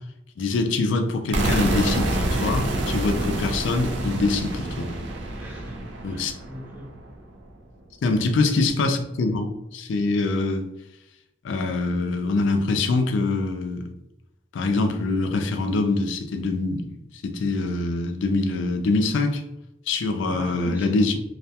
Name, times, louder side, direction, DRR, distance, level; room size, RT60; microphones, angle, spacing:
voice 1, 0.4-4.9 6.0-6.3 8.0-10.6 11.4-13.9 14.5-16.9 17.2-19.4 19.9-21.1, left 3 dB, 80° left, 0.4 m, -24 dB
sound 1, 1.3-7.2, right 1 dB, 75° right, 0.4 m, -27 dB
voice 2, 5.4-6.9 8.0-8.2 20.3-21.0, right 1 dB, 10° right, 0.4 m, -40 dB
2.3 x 2.2 x 2.7 m
head